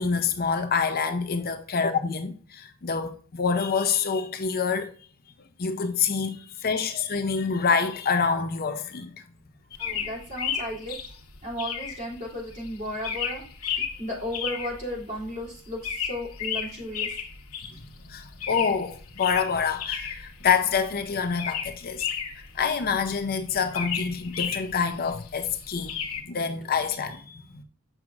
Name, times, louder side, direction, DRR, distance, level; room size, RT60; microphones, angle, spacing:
voice 1, 0.0-4.9 5.6-9.1 18.1-22.1 22.5-26.0 26.3-27.6, left 6 dB, 45° left, 0.6 m, -26 dB
sound 1, 9.8-26.2, left 7 dB, 85° left, 1.2 m, -34 dB
voice 2, 9.8-11.0 11.4-17.1, equal, 35° right, 3.1 m, -34 dB
7.8 x 5.9 x 2.4 m
head